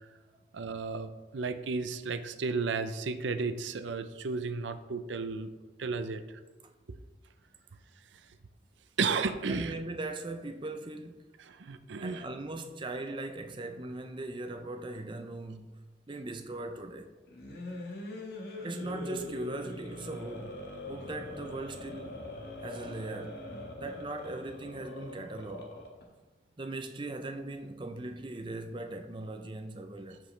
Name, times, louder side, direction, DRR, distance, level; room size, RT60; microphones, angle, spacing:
voice 1, 0.5-5.5 5.8-6.2 9.0-9.8 11.4-12.3, right 4 dB, 85° right, 0.5 m, -33 dB
voice 2, 9.5-11.2 12.0-15.8 16.1-17.1 18.6-22.3 22.6-23.5 23.8-25.7 26.6-30.2, right 2 dB, 25° right, 0.5 m, -39 dB
sound 1, 17.3-26.0, left 1 dB, 55° left, 1.5 m, -42 dB
14.0 x 5.2 x 3.2 m
head